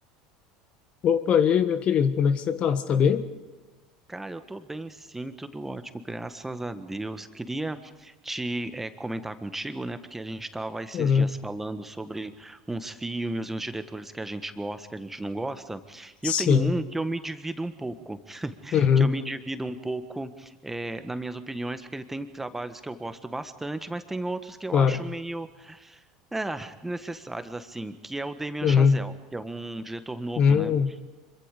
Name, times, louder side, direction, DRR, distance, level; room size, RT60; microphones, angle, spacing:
voice 1, 1.0-3.3 10.9-11.3 16.2-16.7 18.7-19.1 24.7-25.0 28.6-29.0 30.4-30.9, left 7 dB, 45° left, 11 dB, 1.4 m, -21 dB
voice 2, 4.1-26.0 26.3-30.8, right 2 dB, 10° right, 10 dB, 1.6 m, -34 dB
25.5 x 23.5 x 5.2 m, 1.2 s
hypercardioid pair, 75°, 3 cm